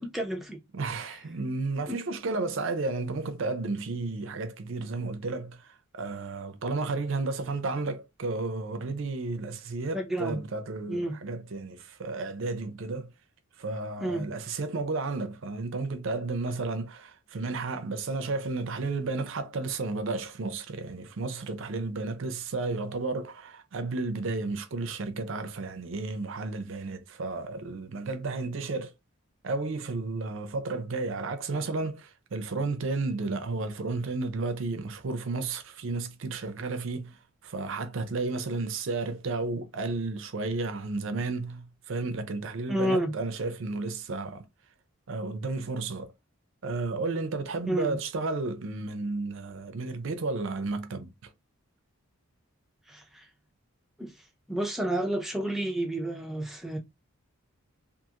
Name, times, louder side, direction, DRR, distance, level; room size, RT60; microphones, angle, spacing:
voice 1, 0.0-0.6 1.9-2.0 9.9-10.4 10.9-11.2 14.0-14.3 42.7-43.1 47.7-48.0 52.9-53.2 54.0-54.1 54.5-56.8, right 1 dB, ahead, 0.5 m, -30 dB
voice 2, 0.7-13.1 13.6-28.9 29.4-44.5 45.1-46.1 46.6-51.3, right 3 dB, 60° right, 0.5 m, -32 dB
2.5 x 2.5 x 2.8 m
head